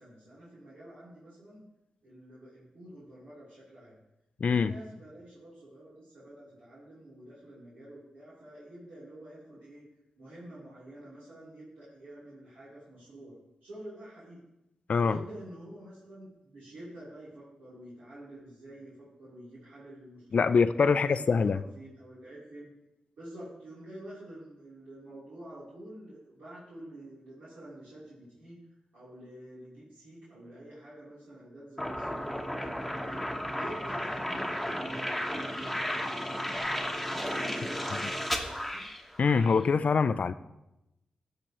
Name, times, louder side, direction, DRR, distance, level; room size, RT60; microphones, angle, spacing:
voice 1, 0.0-1.6 2.0-4.0 4.5-9.8 10.2-13.3 13.6-14.4 15.0-20.6 20.9-22.7 23.1-28.6 28.9-33.2 33.5-35.2 35.5-38.8, right 1 dB, 85° right, 3.3 m, -48 dB
voice 2, 4.4-4.7 14.9-15.2 20.3-21.6 39.2-40.3, left 5 dB, 60° left, 0.3 m, -24 dB
sound 1, 31.8-39.6, equal, ahead, 1.2 m, -34 dB
13.0 x 6.7 x 3.0 m
cardioid pair, 50°, 3 cm